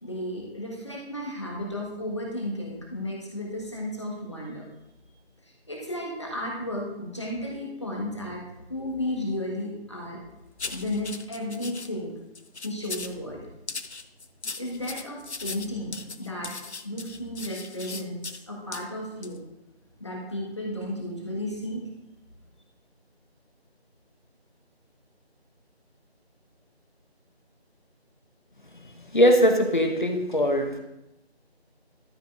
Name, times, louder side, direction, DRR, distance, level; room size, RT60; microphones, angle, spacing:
voice 1, 0.0-4.7 5.4-8.4 8.7-10.2 10.7-12.1 12.6-13.5 14.6-16.5 16.8-19.4 20.0-21.8, left 1 dB, 25° left, -3 dB, 1.5 m, -33 dB
sound 1, 10.6-11.9 12.3-13.2 13.7-18.4 18.7-18.8 19.2-19.4, left 4 dB, 90° left, 0.7 m, -38 dB
voice 2, 29.1-30.8, equal, 50° left, 5 dB, 1.1 m, -21 dB
13.0 x 7.1 x 2.5 m, 0.90 s
figure-of-eight pair, 170°, 32 cm